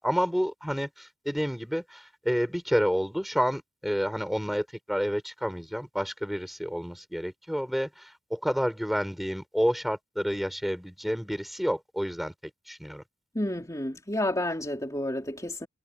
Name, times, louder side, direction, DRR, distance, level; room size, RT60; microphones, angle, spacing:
voice 1, 0.0-12.3 12.7-13.0, equal, ahead, 5.6 m, -29 dB
voice 2, 13.3-15.7, left 1 dB, 15° left, 3.4 m, -30 dB
head